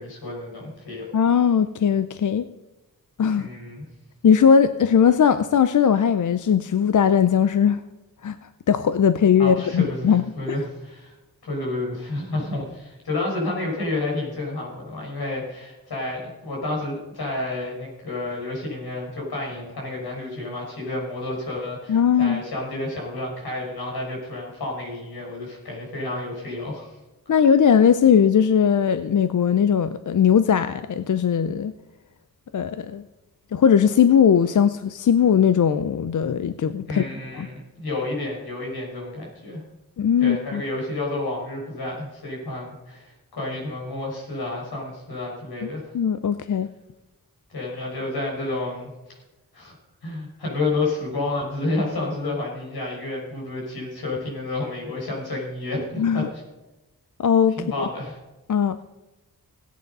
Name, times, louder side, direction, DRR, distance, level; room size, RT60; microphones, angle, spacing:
voice 1, 0.0-1.1 3.4-3.8 9.4-11.1 11.4-26.9 36.9-39.6 40.2-45.9 47.5-48.9 49.5-49.7 50.0-56.2 57.6-58.2, left 2 dB, 85° left, -2 dB, 5.7 m, -30 dB
voice 2, 1.1-2.5 3.2-3.5 4.2-7.8 8.2-8.4 8.7-10.2 21.9-22.4 27.3-31.7 32.5-33.0 33.5-37.0 37.3-37.5 40.0-40.6 45.6-45.7 45.9-46.7 56.0-56.3 57.2-57.8 58.5-58.8, left 7 dB, 55° left, 12 dB, 0.5 m, -19 dB
17.0 x 9.4 x 5.4 m, 1.0 s
wide cardioid pair, 135°, 37 cm